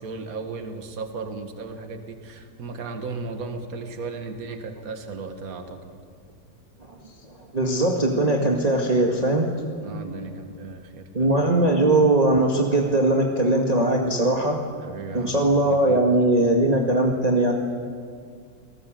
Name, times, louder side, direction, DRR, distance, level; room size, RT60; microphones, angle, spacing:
voice 1, 0.0-5.9 9.8-11.3 14.8-16.3, right 4 dB, 50° right, 6 dB, 2.2 m, -36 dB
voice 2, 7.5-9.5 11.1-14.6 15.1-17.5, right 2 dB, 20° right, 0 dB, 1.9 m, -20 dB
29.0 x 19.5 x 7.7 m, 2.1 s
omnidirectional pair, 2.0 m